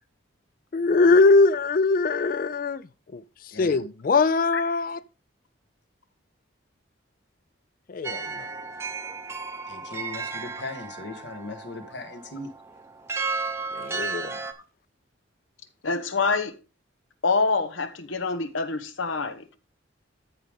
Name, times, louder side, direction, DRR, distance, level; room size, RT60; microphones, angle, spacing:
voice 1, 0.7-2.8 3.1-5.0 7.9-8.5 13.7-14.4, left 3 dB, 45° left, 0.3 m, -22 dB
sound 1, 8.0-14.5, right 4 dB, 15° right, 0.7 m, -34 dB
voice 2, 9.7-12.5, left 2 dB, 60° left, 1.4 m, -38 dB
voice 3, 15.8-16.5 17.2-19.5, left 4 dB, 80° left, 1.1 m, -26 dB
14.0 x 5.1 x 3.4 m
head